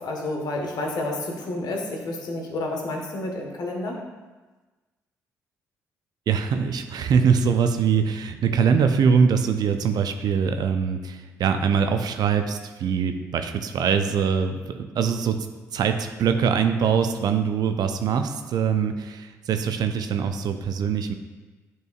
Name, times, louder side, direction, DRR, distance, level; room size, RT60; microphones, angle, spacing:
voice 1, 0.0-4.0, left 2 dB, 60° left, 1 dB, 1.4 m, -30 dB
voice 2, 6.3-15.5 15.7-21.1, right 6 dB, 60° right, 7 dB, 0.6 m, -23 dB
10.5 x 4.6 x 2.4 m, 1.2 s
hypercardioid pair, 45°, 8 cm